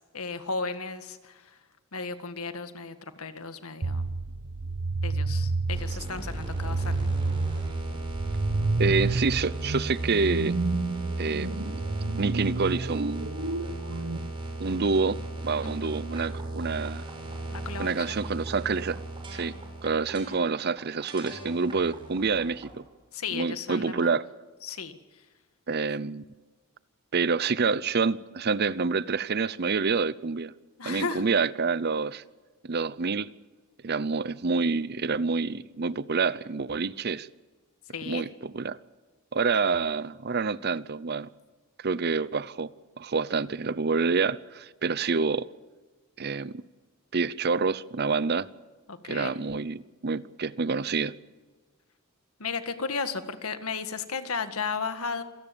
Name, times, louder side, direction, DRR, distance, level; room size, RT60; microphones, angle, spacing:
voice 1, 0.0-1.6 1.9-4.2 5.0-7.0 15.6-16.0 17.5-18.2 23.1-24.1 24.6-25.0 30.8-31.3 37.9-38.2 48.9-49.3 52.4-55.2, left 4 dB, 80° left, 1.8 m, -34 dB
sound 1, 3.8-14.2, right 3 dB, 65° right, 1.0 m, -30 dB
sound 2, 5.7-22.8, right 2 dB, 25° right, 6.5 m, -37 dB
voice 2, 8.7-10.5 11.2-11.8 12.2-13.3 14.6-17.0 17.8-19.0 19.3-19.5 19.8-22.8 23.3-24.3 25.7-26.2 27.1-30.5 30.8-32.2 32.6-33.3 33.8-37.3 38.1-38.8 39.3-41.3 41.8-42.7 43.0-45.5 46.2-46.6 47.1-48.5 49.0-51.1, right 4 dB, 50° right, 0.7 m, -27 dB
26.5 x 18.0 x 7.0 m
head